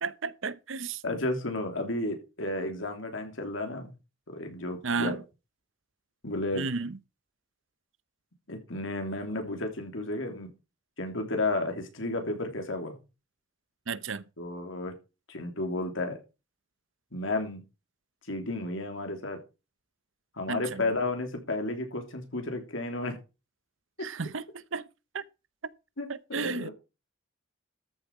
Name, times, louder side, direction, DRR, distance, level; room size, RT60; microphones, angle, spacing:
voice 1, 0.0-1.0 4.8-5.2 6.5-7.0 13.9-14.2 20.5-20.9 24.0-24.4 24.7-24.9 25.1-25.2 26.1-26.7, right 4 dB, 85° right, 0.8 m, -33 dB
voice 2, 1.0-3.9 4.3-5.2 6.2-6.6 8.5-10.5 11.0-12.9 14.4-14.9 15.3-16.2 17.1-17.6 18.3-19.4 20.4-23.2 26.0-26.7, left 2 dB, 85° left, 3.3 m, -32 dB
13.5 x 7.0 x 4.8 m
head